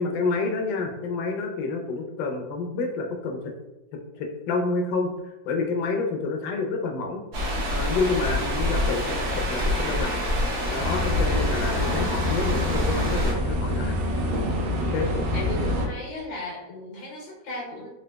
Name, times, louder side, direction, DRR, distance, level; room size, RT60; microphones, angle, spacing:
voice 1, 0.0-3.5 4.2-5.1 5.4-7.2 7.7-10.2 10.7-14.0 14.9-15.1, left 4 dB, 70° left, 3 dB, 1.1 m, -28 dB
sound 1, 7.3-13.3, left 1 dB, 55° right, 0.8 m, -26 dB
sound 2, 10.8-15.9, left 1 dB, 75° right, 1.1 m, -26 dB
voice 2, 11.7-12.2 15.3-17.9, left 2 dB, 90° left, -3 dB, 1.7 m, -36 dB
3.9 x 2.7 x 2.2 m, 0.99 s
omnidirectional pair, 2.0 m